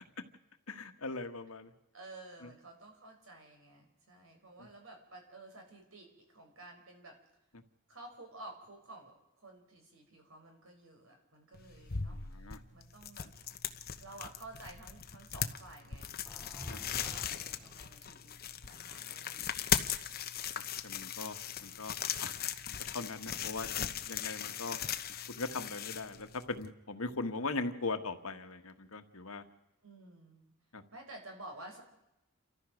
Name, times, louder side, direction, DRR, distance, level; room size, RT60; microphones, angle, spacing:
voice 1, 0.7-1.7 2.4-2.5 12.1-12.6 16.7-16.8 20.8-22.3 22.8-24.8 25.3-29.4 30.7-30.8, left 3 dB, 85° left, 8 dB, 1.6 m, -40 dB
voice 2, 1.9-7.2 7.9-13.3 14.0-16.1 16.9-18.4 18.7-19.7 21.6-22.0 29.8-30.5 30.9-31.8, right 2 dB, 65° right, 3 dB, 5.0 m, -52 dB
sound 1, 11.5-26.7, left 8 dB, 45° left, 1.0 m, -39 dB
sound 2, 16.3-17.9, equal, ahead, 0.7 m, -48 dB
29.0 x 14.0 x 6.5 m, 0.90 s
head